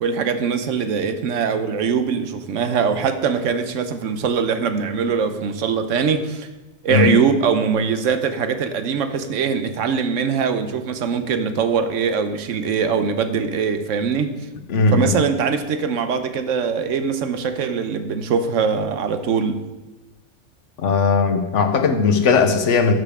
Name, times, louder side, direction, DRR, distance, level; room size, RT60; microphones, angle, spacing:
voice 1, 0.0-6.5 6.8-14.4 14.9-19.7, right 6 dB, 80° right, 9 dB, 1.1 m, -22 dB
voice 2, 14.7-15.1 20.8-22.9, left 5 dB, 75° left, 7 dB, 1.1 m, -18 dB
12.0 x 6.7 x 3.6 m, 1.1 s
omnidirectional pair, 1.3 m